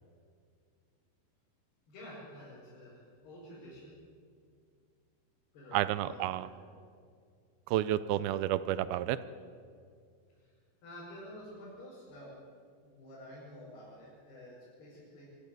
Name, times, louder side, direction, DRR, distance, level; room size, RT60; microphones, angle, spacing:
voice 1, 1.9-3.9 5.5-6.5 10.4-12.4 12.8-15.3, left 1 dB, 80° left, -8 dB, 7.8 m, -50 dB
voice 2, 5.7-6.5 7.7-9.2, right 13 dB, 80° right, 15 dB, 2.4 m, -30 dB
23.5 x 14.0 x 9.5 m, 2.2 s
omnidirectional pair, 4.5 m